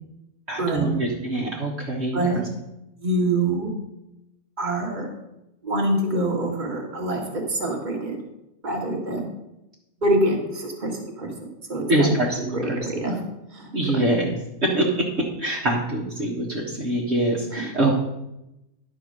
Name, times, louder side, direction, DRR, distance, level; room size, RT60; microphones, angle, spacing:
voice 1, 0.5-2.4 11.9-12.9 13.7-17.9, right 1 dB, 55° right, -4 dB, 1.7 m, -24 dB
voice 2, 2.1-2.4 3.0-3.7 4.6-5.1 5.6-7.2 7.5-8.2 8.6-9.3 10.0-12.1 12.5-13.2 13.5-14.1 17.6-17.7, right 1 dB, 35° right, 0 dB, 1.9 m, -25 dB
11.0 x 4.6 x 6.5 m, 0.89 s
omnidirectional pair, 1.4 m